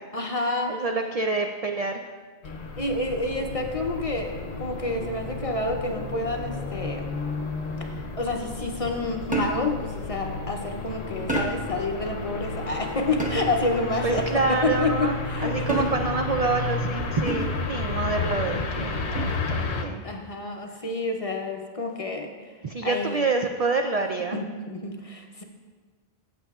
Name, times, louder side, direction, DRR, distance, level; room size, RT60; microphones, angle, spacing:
voice 1, 0.1-0.8 2.8-7.1 7.8-15.9 20.0-22.3 22.8-23.2 24.3-25.4, left 2 dB, 40° left, 3 dB, 0.6 m, -29 dB
voice 2, 0.7-2.1 14.0-20.0 22.6-24.4, right 3 dB, 55° right, 4 dB, 0.4 m, -27 dB
sound 1, 2.4-19.8, left 3 dB, 75° left, 1.0 m, -32 dB
sound 2, 9.3-9.8 11.3-11.8 13.2-13.7 15.7-16.3 17.3-17.7 19.2-19.5, right 2 dB, 10° right, 0.9 m, -29 dB
15.0 x 7.5 x 2.3 m, 1.5 s
omnidirectional pair, 1.1 m